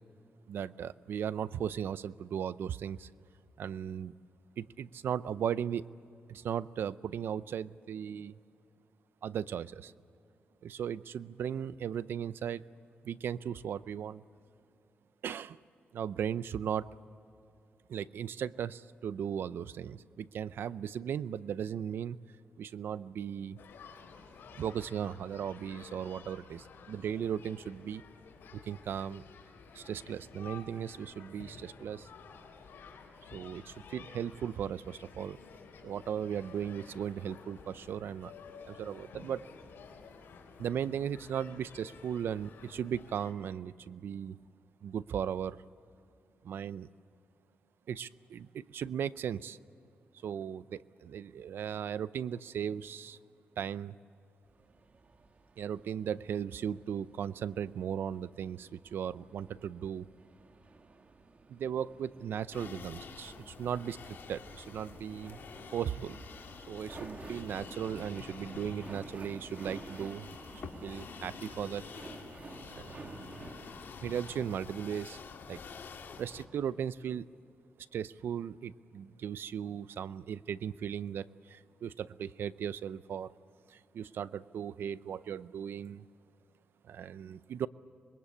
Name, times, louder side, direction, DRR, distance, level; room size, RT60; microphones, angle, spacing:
voice 1, 0.5-3.1 3.6-4.1 4.6-5.9 6.3-8.4 9.2-9.9 10.6-12.6 13.0-14.2 15.2-15.6 15.9-16.9 17.9-22.2 22.6-23.6 24.6-28.0 28.5-29.2 29.7-32.1 33.3-35.4 35.8-38.3 38.7-39.4 40.6-44.4 44.8-45.6 46.4-46.9 47.9-49.6 50.2-53.2 53.6-54.0 55.6-60.1 61.5-65.4 65.7-66.2 66.7-70.3 70.8-71.8 72.7-73.5 74.0-75.2 75.5-75.6 76.2-77.3 77.9-83.3 83.7-86.0 86.8-87.7, right 8 dB, 80° right, 17 dB, 0.5 m, -37 dB
sound 1, 23.6-43.3, left 5 dB, 90° left, 3.7 m, -52 dB
sound 2, 54.4-74.2, right 3 dB, 40° right, 1.5 m, -52 dB
sound 3, 62.5-76.4, left 5 dB, 75° left, 2.3 m, -48 dB
25.5 x 21.5 x 8.5 m, 2.6 s
cardioid pair, 95°, 4 cm